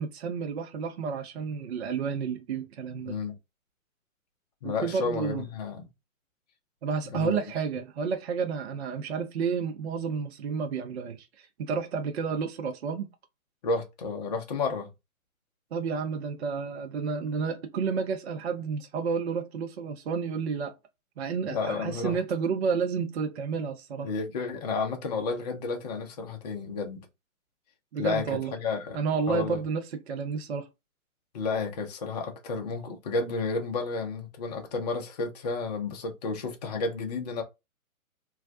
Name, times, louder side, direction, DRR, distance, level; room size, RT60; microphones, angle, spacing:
voice 1, 0.0-3.1 4.6-5.5 6.8-13.1 15.7-20.7 21.2-24.1 27.9-28.5 28.9-30.7, right 5 dB, 50° right, 0.5 m, -31 dB
voice 2, 3.0-3.4 4.6-5.8 7.1-7.4 13.6-14.9 21.4-22.2 24.0-27.1 28.0-29.0 29.3-29.6 31.3-37.4, left 4 dB, 30° left, 0.5 m, -31 dB
2.3 x 2.1 x 2.5 m
figure-of-eight pair, 125°, 43 cm